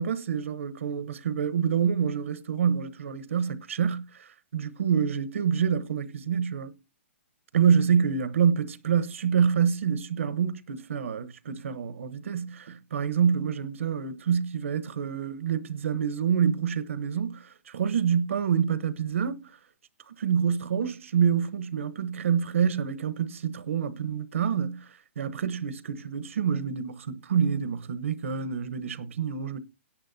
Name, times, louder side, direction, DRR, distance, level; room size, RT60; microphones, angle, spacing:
voice 1, 0.0-6.7 7.5-19.5 20.1-24.9 25.2-29.6, right 7 dB, 70° right, 1.1 m, -27 dB
17.0 x 8.6 x 2.7 m
hypercardioid pair, 165°, 7 cm